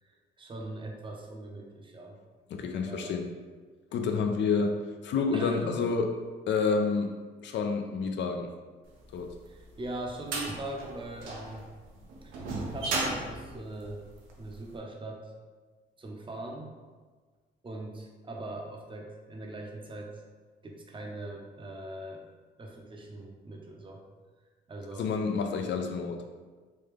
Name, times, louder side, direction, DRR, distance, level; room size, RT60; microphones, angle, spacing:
voice 1, 0.0-2.2 2.8-3.2 5.2-5.8 9.5-11.6 12.2-14.0 14.4-15.3 16.0-16.7 17.6-20.1 20.6-22.3 22.6-24.0 24.7-25.1, right 1 dB, 25° right, 0 dB, 0.6 m, -41 dB
voice 2, 2.5-3.3 3.9-4.8 5.0-6.1 6.5-7.1 7.4-8.5 9.1-9.3 25.0-26.2, left 5 dB, 65° left, 5 dB, 0.4 m, -29 dB
sound 1, 9.2-14.6, right 2 dB, 90° right, 0.6 m, -35 dB
3.2 x 2.3 x 3.4 m, 1.4 s
cardioid pair, 90°, 20 cm